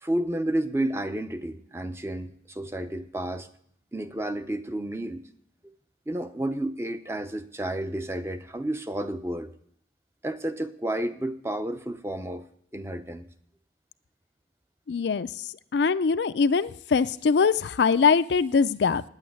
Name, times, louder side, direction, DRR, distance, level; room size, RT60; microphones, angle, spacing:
voice 1, 0.0-3.5 3.9-5.3 6.1-9.5 10.2-12.5 12.7-13.3, right 1 dB, 15° right, 9 dB, 0.6 m, -31 dB
voice 2, 14.9-15.3 15.7-19.0, left 5 dB, 75° left, 14 dB, 0.4 m, -22 dB
9.4 x 8.3 x 9.1 m, 0.67 s
head